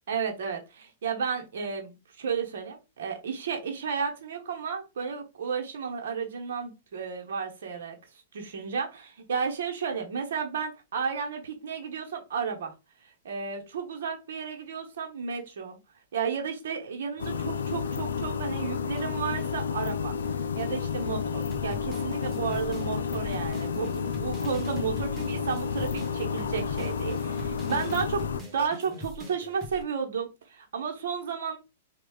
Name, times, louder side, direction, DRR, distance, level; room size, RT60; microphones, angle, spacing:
voice 1, 0.1-8.0 8.3-12.7 13.2-15.8 16.1-20.2 20.5-28.2 28.5-31.6, right 6 dB, 70° right, 0.9 m, -33 dB
sound 1, 17.2-28.4, left 6 dB, 85° left, 0.3 m, -31 dB
sound 2, 17.2-19.7 20.2-29.8, left 1 dB, 15° right, 1.3 m, -43 dB
3.1 x 2.3 x 3.5 m
hypercardioid pair, 125°, 0 cm